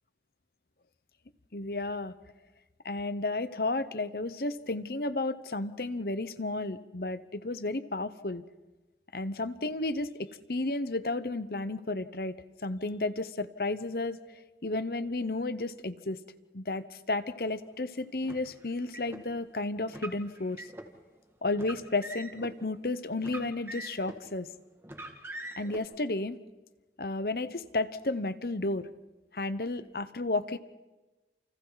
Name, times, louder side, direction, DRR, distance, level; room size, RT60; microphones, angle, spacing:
voice 1, 1.5-2.1 2.8-8.4 9.1-12.3 12.6-14.2 14.6-16.2 16.5-20.6 21.4-24.5 25.6-26.4 27.0-28.9 29.3-30.6, left 2 dB, 55° left, 12 dB, 1.0 m, -32 dB
Car, 18.2-19.2 19.9-20.9 21.5-22.5 23.2-24.3 24.8-25.8, right 1 dB, 15° right, 2.2 m, -43 dB
30.0 x 29.0 x 4.1 m, 1.2 s
head